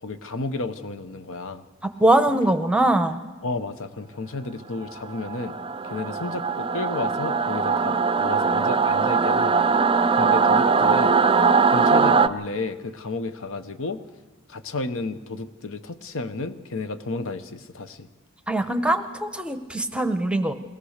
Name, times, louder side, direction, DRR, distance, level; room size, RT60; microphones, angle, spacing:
voice 1, 0.0-1.6 3.4-5.6 5.8-9.7 10.1-11.2 11.7-14.0 14.5-18.1, left 3 dB, 60° left, 11 dB, 0.9 m, -32 dB
voice 2, 2.0-3.2 18.5-20.5, right 1 dB, 5° right, 8 dB, 0.9 m, -21 dB
Singing / Musical instrument, 5.1-12.3, right 5 dB, 25° right, 0.5 m, -21 dB
23.0 x 17.5 x 6.6 m, 1.3 s
head